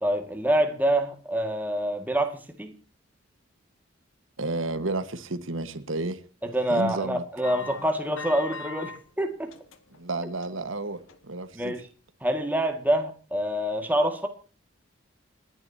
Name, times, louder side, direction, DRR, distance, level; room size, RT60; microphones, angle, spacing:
voice 1, 0.0-2.7 6.4-9.5 11.5-11.8 12.2-14.3, right 1 dB, 10° right, 1.9 m, -26 dB
voice 2, 4.4-6.2 6.7-7.2 10.0-11.7, right 2 dB, 75° right, 1.5 m, -31 dB
sound 1, 7.4-9.0 9.4-10.0 10.4-10.6 11.1-11.2, left 3 dB, 80° left, 2.0 m, -39 dB
29.0 x 11.0 x 2.8 m
head